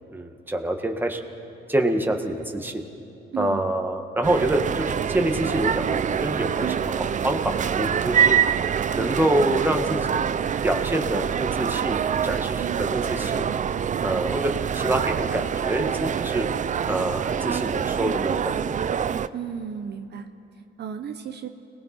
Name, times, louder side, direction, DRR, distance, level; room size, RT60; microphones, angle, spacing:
voice 1, 0.1-1.2 1.7-2.8 3.4-8.4 8.9-10.4 10.6-12.6 12.9-13.5 14.0-16.5 16.9-18.9, right 1 dB, 10° right, 3 dB, 1.7 m, -26 dB
voice 2, 3.3-3.7 6.6-6.8 12.6-12.9 19.3-20.3 20.8-21.5, right 8 dB, 55° right, 6 dB, 0.9 m, -33 dB
sound 1, 4.2-19.3, right 8 dB, 40° right, 0.5 m, -25 dB
30.0 x 19.5 x 4.5 m, 2.8 s
cardioid pair, 90°, 20 cm